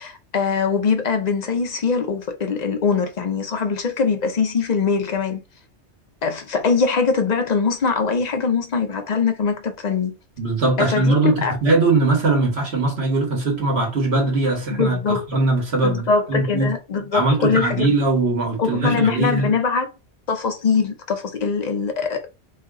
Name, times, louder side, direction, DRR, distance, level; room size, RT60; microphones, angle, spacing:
voice 1, 0.0-5.4 6.2-10.1 10.8-11.6 14.7-15.3 15.8-17.9 18.6-19.9 20.3-22.3, left 5 dB, 45° left, 0.7 m, -22 dB
voice 2, 10.4-16.7 17.1-19.5, right 3 dB, 65° right, 1.7 m, -20 dB
3.3 x 2.9 x 3.6 m
omnidirectional pair, 1.2 m